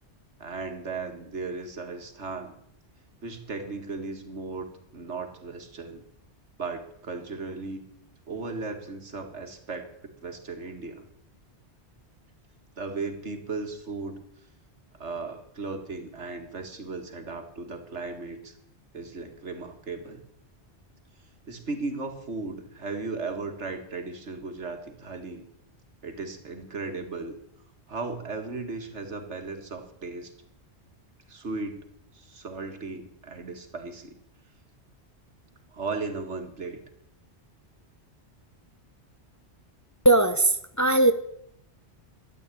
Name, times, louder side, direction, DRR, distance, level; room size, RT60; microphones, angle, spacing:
voice 1, 0.4-2.5 3.2-4.7 4.9-6.0 6.6-7.8 8.3-9.9 10.2-11.1 12.8-14.2 15.0-18.5 18.9-20.2 21.5-25.5 26.0-27.4 27.9-30.3 31.3-31.9 32.1-34.1 35.7-36.8, right 3 dB, 90° right, 6 dB, 2.2 m, -36 dB
voice 2, 40.0-41.1, right 2 dB, 20° left, 9 dB, 0.7 m, -19 dB
13.0 x 8.9 x 10.0 m, 0.75 s
omnidirectional pair, 1.1 m